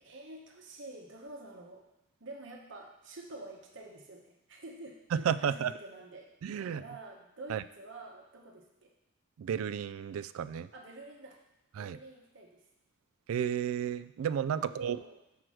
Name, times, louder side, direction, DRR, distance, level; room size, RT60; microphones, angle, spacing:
voice 1, 0.0-1.9 2.2-6.3 6.6-8.9 10.7-11.4 11.7-12.6 14.6-15.2, right 2 dB, 60° right, 0 dB, 1.1 m, -48 dB
voice 2, 5.1-5.7 6.4-6.8 7.5-7.6 9.4-10.7 11.8-12.0 13.3-15.0, right 8 dB, 85° right, 14 dB, 0.3 m, -32 dB
6.0 x 4.7 x 6.2 m, 0.87 s
head